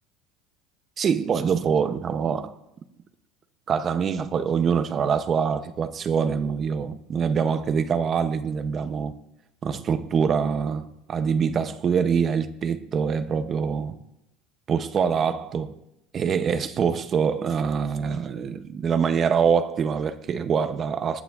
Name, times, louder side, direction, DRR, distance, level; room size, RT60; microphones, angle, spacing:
voice 1, 1.0-2.5 3.7-9.1 9.6-14.0 14.7-15.8 16.1-21.2, right 6 dB, 25° right, 0.6 m, -24 dB
22.0 x 9.2 x 2.4 m
cardioid pair, 170°, 0 cm